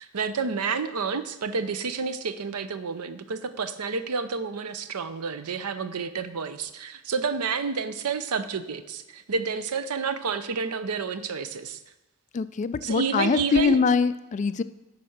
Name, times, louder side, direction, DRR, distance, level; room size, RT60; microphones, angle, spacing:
voice 1, 0.0-11.8 12.8-13.8, right 5 dB, 85° right, 12 dB, 0.6 m, -30 dB
voice 2, 12.3-14.6, left 5 dB, 35° left, 14 dB, 0.3 m, -23 dB
10.0 x 4.2 x 6.4 m, 1.0 s
head